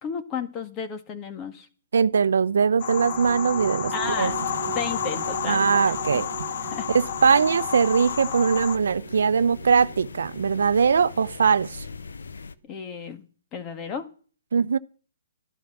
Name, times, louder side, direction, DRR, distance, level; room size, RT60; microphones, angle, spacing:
voice 1, 0.0-1.7 3.9-4.4 4.7-5.7 6.1-6.2 6.7-6.9 12.6-13.3 13.5-14.1, left 6 dB, 20° left, 1.8 m, -33 dB
voice 2, 1.9-4.3 5.5-6.3 6.9-11.8 14.5-14.8, right 6 dB, 70° right, 0.8 m, -21 dB
sound 1, 2.1-11.9, right 12 dB, 40° right, 1.0 m, -40 dB
sound 2, 2.8-8.8, left 10 dB, 45° left, 0.9 m, -31 dB
sound 3, 4.0-12.6, left 4 dB, 80° left, 1.1 m, -41 dB
13.0 x 11.0 x 6.2 m
hypercardioid pair, 145°, 0 cm